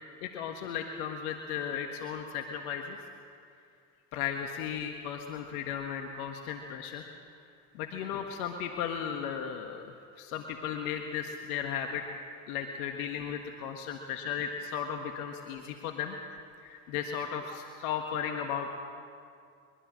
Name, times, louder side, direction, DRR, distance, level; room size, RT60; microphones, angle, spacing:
voice 1, 0.2-3.0 4.1-7.1 7.7-12.0 12.5-16.2 16.6-18.8, left 8 dB, 75° left, 4 dB, 1.6 m, -35 dB
23.0 x 23.0 x 6.4 m, 2.4 s
hypercardioid pair, 75°, 44 cm